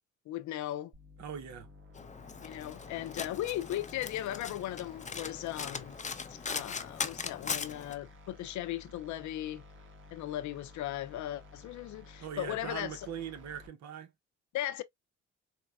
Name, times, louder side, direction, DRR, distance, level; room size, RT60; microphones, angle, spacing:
voice 1, 0.3-0.9 2.4-6.0 6.3-9.6 10.1-13.1 14.5-14.8, left 13 dB, 70° left, 0.5 m, -37 dB
sound 1, 0.9-13.7, left 2 dB, 40° right, 1.2 m, -54 dB
voice 2, 1.2-1.7 12.2-14.1, right 8 dB, 65° right, 0.8 m, -41 dB
Domestic sounds home sounds, 1.9-7.9, left 5 dB, 25° left, 0.5 m, -40 dB
4.3 x 2.1 x 2.3 m
cardioid pair, 90°, 30 cm